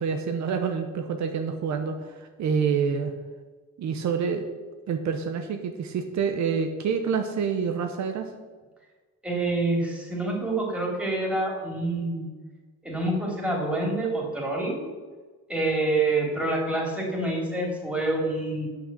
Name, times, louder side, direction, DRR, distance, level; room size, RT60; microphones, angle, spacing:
voice 1, 0.0-3.1 3.8-4.4 4.9-8.3, right 6 dB, 70° right, 6 dB, 0.9 m, -27 dB
voice 2, 9.2-12.3 12.8-14.8 15.5-18.7, right 2 dB, 5° right, -2 dB, 3.2 m, -27 dB
6.3 x 6.1 x 7.4 m, 1.3 s
cardioid pair, 90°, 30 cm